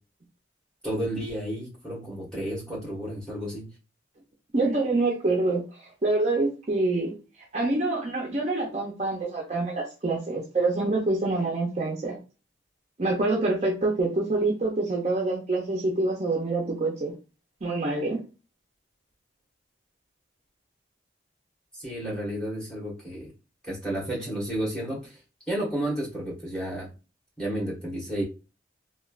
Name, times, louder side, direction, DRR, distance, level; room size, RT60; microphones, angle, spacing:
voice 1, 0.8-3.6 21.7-23.3 23.6-25.2 25.5-26.9 27.4-28.2, right 1 dB, 5° left, -5 dB, 1.2 m, -31 dB
voice 2, 4.5-7.1 7.5-12.2 13.0-17.1 17.6-18.2, right 2 dB, 35° right, 0 dB, 0.5 m, -26 dB
3.2 x 2.2 x 2.4 m, 0.32 s
head